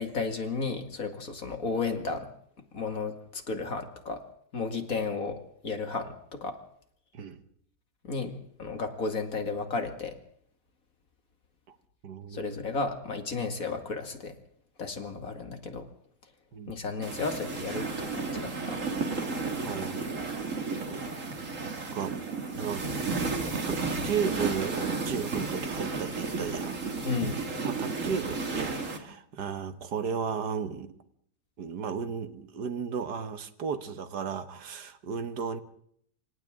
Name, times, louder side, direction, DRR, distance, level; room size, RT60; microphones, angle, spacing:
voice 1, 0.0-2.3 2.7-4.2 4.5-5.4 5.6-6.6 8.0-10.2 12.3-14.3 14.8-15.8 16.7-18.8 27.0-27.4, left 4 dB, 55° left, 2.6 m, -33 dB
voice 2, 12.0-12.5 16.5-16.7 19.7-20.4 20.8-21.1 21.9-22.3 22.5-22.9 23.6-26.8 27.6-31.0 31.6-35.6, right 6 dB, 80° right, 1.9 m, -34 dB
sound 1, 17.0-29.0, right 4 dB, 50° right, 2.6 m, -33 dB
27.5 x 25.5 x 3.7 m
omnidirectional pair, 1.8 m